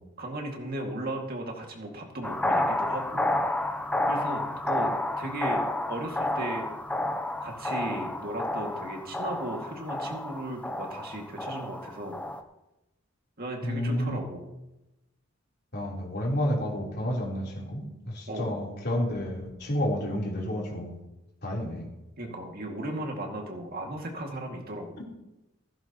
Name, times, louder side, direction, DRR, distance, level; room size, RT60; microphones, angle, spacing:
voice 1, 0.2-3.3 4.1-5.6 5.9-6.7 7.4-12.2 13.4-14.5 18.3-18.6 22.2-25.0, right 1 dB, 50° right, 1 dB, 2.2 m, -36 dB
sound 1, 2.2-12.4, left 1 dB, 5° left, 0.6 m, -30 dB
voice 2, 13.6-14.2 15.7-21.0 21.4-21.9, left 1 dB, 55° left, -3 dB, 3.7 m, -30 dB
16.0 x 15.0 x 3.0 m, 0.95 s
head